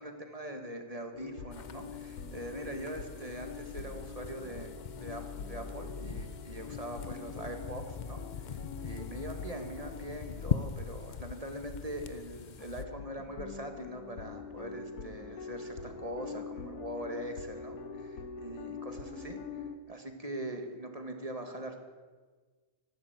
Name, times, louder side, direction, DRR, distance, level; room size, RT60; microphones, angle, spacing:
voice 1, 0.0-4.7 5.0-21.8, right 1 dB, 25° right, 5 dB, 1.7 m, -42 dB
sound 1, 1.1-11.3 11.6-11.7 12.6-19.8, left 4 dB, 90° left, 1.4 m, -45 dB
sound 2, 1.5-12.8, left 7 dB, 60° left, 0.4 m, -41 dB
14.0 x 12.5 x 8.2 m, 1.4 s
omnidirectional pair, 1.5 m